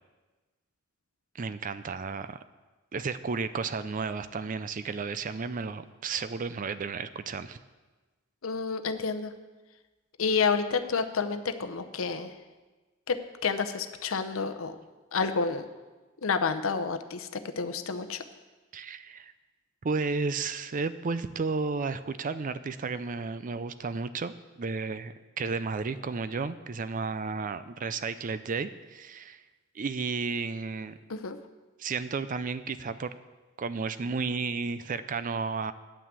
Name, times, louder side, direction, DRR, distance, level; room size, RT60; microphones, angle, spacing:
voice 1, 1.3-2.4 2.9-7.6 18.7-19.3 19.8-29.4 29.7-31.0 31.8-33.1 33.6-35.7, right 4 dB, 40° right, 13 dB, 0.4 m, -33 dB
voice 2, 8.4-9.3 10.2-12.3 13.1-13.2 13.4-14.8 15.1-15.7 16.2-18.2 31.1-31.4, left 5 dB, 80° left, 9 dB, 0.7 m, -29 dB
9.1 x 6.0 x 8.2 m, 1.2 s
head